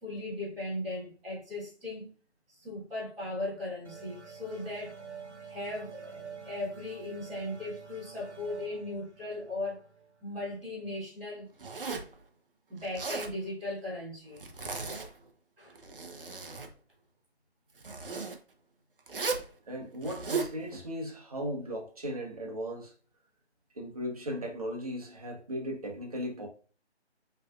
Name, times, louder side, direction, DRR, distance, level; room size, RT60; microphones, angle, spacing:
voice 1, 0.0-2.1 2.5-5.0 5.5-9.8 10.2-11.5 12.7-14.5 15.6-15.8, left 2 dB, ahead, 1.0 m, -38 dB
sound 1, 3.8-11.1, right 6 dB, 90° right, 1.1 m, -48 dB
Zipper (clothing), 11.6-12.2 12.8-13.3 14.4-15.1 15.7-16.7 17.8-18.4 19.1-19.5 20.0-20.5, right 4 dB, 55° right, 0.8 m, -36 dB
voice 2, 19.7-22.9 23.7-26.5, equal, 35° right, 1.1 m, -37 dB
6.0 x 3.3 x 2.4 m
figure-of-eight pair, 165°, 34 cm